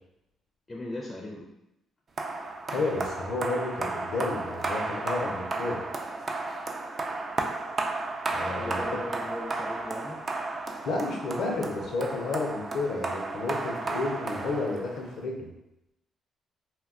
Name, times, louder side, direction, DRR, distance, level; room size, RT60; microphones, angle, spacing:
voice 1, 0.7-1.5 8.6-10.3, left 1 dB, 25° left, -2 dB, 0.4 m, -38 dB
sound 1, 2.2-15.2, right 3 dB, 40° right, 0.3 m, -33 dB
voice 2, 2.7-5.8 8.3-9.1 10.8-15.5, left 3 dB, 75° left, 1 dB, 0.6 m, -31 dB
2.3 x 2.2 x 3.6 m, 0.85 s
cardioid pair, 90°, 0 cm